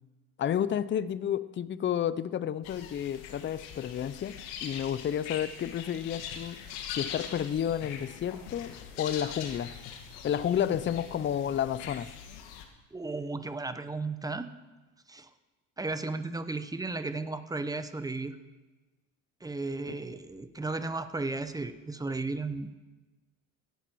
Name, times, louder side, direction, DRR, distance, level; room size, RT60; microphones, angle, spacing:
voice 1, 0.4-6.6 6.9-9.7 10.2-12.1 19.9-20.0, left 9 dB, 30° left, 15 dB, 0.6 m, -31 dB
sound 1, 2.6-12.6, left 8 dB, 80° left, 1.7 m, -42 dB
voice 2, 12.9-14.5 15.1-15.3 15.8-18.4 19.4-22.8, right 3 dB, 10° right, 11 dB, 0.9 m, -34 dB
16.5 x 10.5 x 4.6 m, 1.2 s
supercardioid pair, 85°, 40 cm